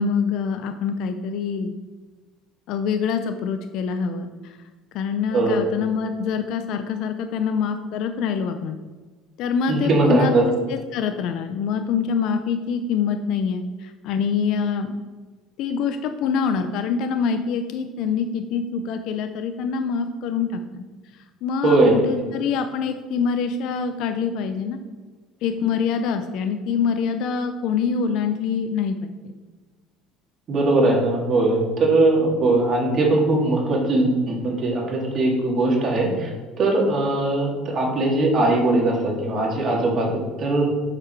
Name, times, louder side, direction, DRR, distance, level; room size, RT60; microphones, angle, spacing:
voice 1, 0.0-1.7 2.7-4.6 4.9-8.8 9.4-14.9 15.6-20.8 21.1-24.8 25.4-29.1, left 6 dB, 65° left, 7 dB, 0.6 m, -25 dB
voice 2, 9.7-10.4 21.6-22.0 30.5-36.3 36.6-40.7, right 2 dB, 45° right, -2 dB, 2.8 m, -20 dB
7.6 x 5.9 x 4.7 m, 1.4 s
supercardioid pair, 95°, 0 cm